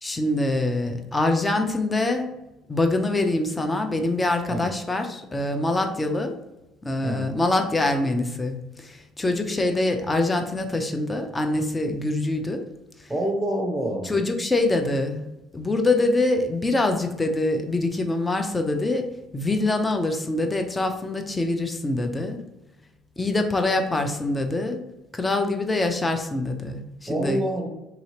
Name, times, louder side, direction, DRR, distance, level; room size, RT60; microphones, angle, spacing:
voice 1, 0.0-2.3 2.7-6.4 6.8-12.7 14.0-15.2 15.5-22.4 23.2-24.8 25.1-27.4, left 2 dB, 20° left, 6 dB, 0.5 m, -24 dB
voice 2, 7.0-7.3 13.1-14.1 27.1-27.7, right 1 dB, 10° right, 0 dB, 0.8 m, -26 dB
2.8 x 2.7 x 2.8 m, 0.97 s
hypercardioid pair, 60°, 0 cm